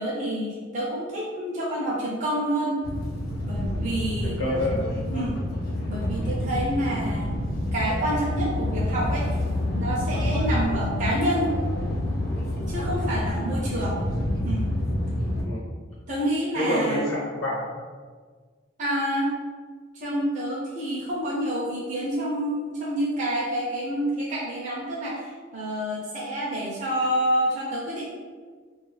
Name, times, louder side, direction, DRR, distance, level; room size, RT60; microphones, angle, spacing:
voice 1, 0.0-2.8 3.4-4.4 5.1-5.4 5.9-7.3 7.7-9.3 9.8-11.5 12.7-14.0 14.4-14.7 16.1-17.1 18.8-19.3 19.9-28.1, right 1 dB, 40° right, -6 dB, 0.5 m, -28 dB
sound 1, 2.8-15.4, left 1 dB, 50° left, 0.4 m, -28 dB
voice 2, 4.2-4.9 13.7-13.9 15.4-15.6 16.5-17.9, left 1 dB, 85° left, -6 dB, 0.9 m, -28 dB
2.4 x 2.3 x 3.1 m, 1.5 s
head